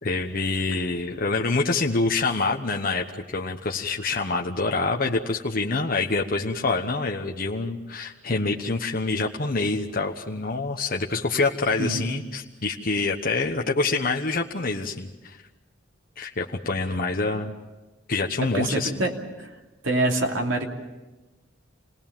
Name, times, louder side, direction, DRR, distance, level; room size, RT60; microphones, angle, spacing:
voice 1, 0.0-15.4 16.2-17.5 18.1-19.0, left 3 dB, 50° left, 1 dB, 1.1 m, -26 dB
voice 2, 11.8-12.3 18.4-19.1 19.4-19.5 19.8-20.7, right 2 dB, 85° right, 1 dB, 2.8 m, -25 dB
27.5 x 19.5 x 7.4 m, 1.1 s
head